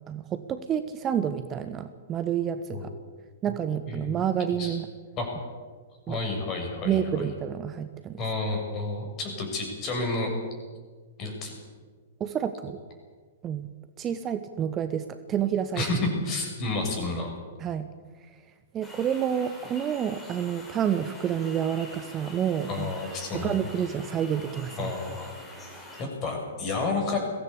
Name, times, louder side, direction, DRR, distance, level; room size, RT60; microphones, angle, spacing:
voice 1, 0.1-2.9 3.4-4.9 6.1-6.2 6.8-8.2 12.2-12.8 13.4-13.7 14.0-15.9 17.6-17.9 18.7-22.9 23.3-24.9, right 9 dB, 25° right, 10 dB, 1.1 m, -29 dB
voice 2, 3.9-4.2 4.5-4.8 5.2-5.3 6.1-7.2 8.2-10.3 11.2-11.6 15.8-16.0 16.2-17.3 22.7-23.5 24.8-25.3 26.0-27.2, left 3 dB, 30° left, 2 dB, 7.2 m, -31 dB
sound 1, 18.8-26.0, left 1 dB, 10° left, 5.7 m, -45 dB
22.0 x 16.5 x 8.5 m, 1.5 s
figure-of-eight pair, 105°, 0 cm